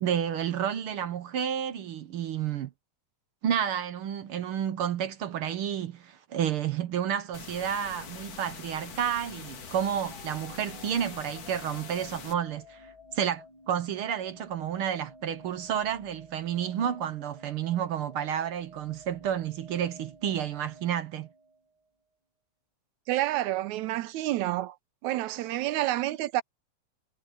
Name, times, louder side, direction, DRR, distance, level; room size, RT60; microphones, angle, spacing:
voice 1, 0.0-2.7 3.4-21.3, right 9 dB, 65° right, 1.4 m, -31 dB
sound 1, 7.3-12.3, left 7 dB, 60° left, 3.1 m, -44 dB
sound 2, 9.7-21.8, equal, 10° left, 1.3 m, -52 dB
voice 2, 23.1-24.8 25.0-26.4, right 15 dB, 85° right, 2.1 m, -29 dB
omnidirectional pair, 3.4 m